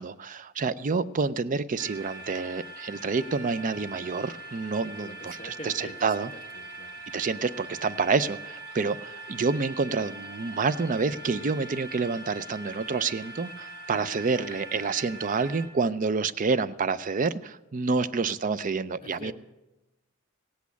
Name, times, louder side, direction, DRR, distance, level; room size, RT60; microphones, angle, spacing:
voice 1, 0.0-6.3 7.1-19.3, right 4 dB, 35° right, 15 dB, 0.4 m, -28 dB
sound 1, 1.8-15.7, right 2 dB, 85° right, 3.0 m, -42 dB
voice 2, 5.0-7.0 14.0-14.2 19.0-19.3, left 1 dB, 25° left, 3 dB, 1.0 m, -44 dB
16.5 x 8.4 x 8.2 m, 0.99 s
head